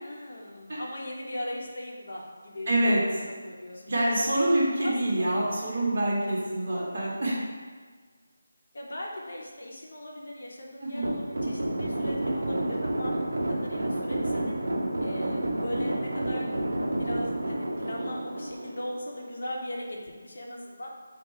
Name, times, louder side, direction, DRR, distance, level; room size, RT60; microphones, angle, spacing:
voice 1, 0.0-3.0 3.2-4.2 4.8-5.3 6.7-6.8 8.7-14.6 15.0-16.5 17.0-20.9, left 1 dB, 50° left, -2 dB, 0.7 m, -39 dB
voice 2, 2.7-3.0 3.9-7.4 10.8-11.1, right 1 dB, 35° right, -6 dB, 1.1 m, -26 dB
sound 1, 11.0-19.3, right 1 dB, 70° right, 0.5 m, -30 dB
4.4 x 2.4 x 4.6 m, 1.5 s
figure-of-eight pair, 180°, 0 cm